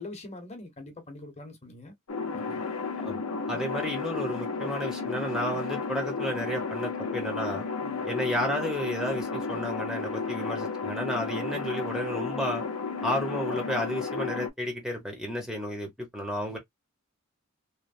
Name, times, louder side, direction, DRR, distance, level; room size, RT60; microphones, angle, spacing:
voice 1, 0.0-1.9 2.3-2.6 7.8-8.0 16.5-16.6, left 2 dB, 30° left, 1.0 m, -43 dB
sound 1, 2.1-14.5, left 4 dB, 90° left, 0.7 m, -33 dB
voice 2, 3.5-7.6 8.0-12.6 13.0-16.6, equal, ahead, 0.7 m, -32 dB
3.1 x 2.0 x 2.5 m
head